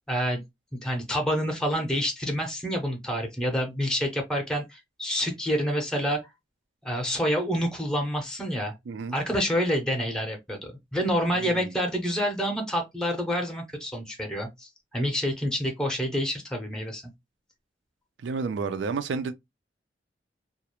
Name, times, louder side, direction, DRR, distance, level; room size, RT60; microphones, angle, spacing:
voice 1, 0.1-0.4 0.8-6.2 6.8-8.7 9.1-17.0, equal, 5° left, 0.6 m, -28 dB
voice 2, 8.9-9.2 11.3-11.7 18.2-19.3, right 4 dB, 70° right, 0.4 m, -31 dB
2.3 x 2.0 x 2.8 m
head